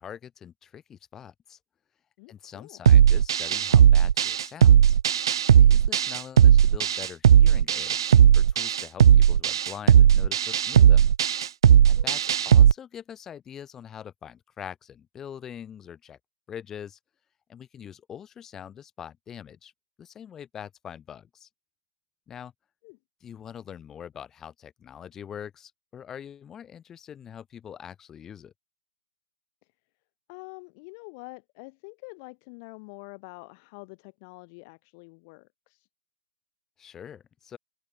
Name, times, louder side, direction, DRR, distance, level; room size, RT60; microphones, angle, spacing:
voice 1, 0.0-1.6 2.3-5.0 5.6-11.1 11.9-16.2 16.5-17.0 17.5-19.7 20.0-21.5 22.3-22.5 23.2-28.5 36.8-37.6, left 8 dB, 15° left, 5.8 m, -43 dB
voice 2, 2.2-2.8 12.0-12.2 22.8-23.0 30.3-35.9, left 31 dB, 35° left, 4.5 m, -46 dB
sound 1, 2.9-12.7, right 9 dB, 65° right, 0.4 m, -17 dB
open air
hypercardioid pair, 145°, 3 cm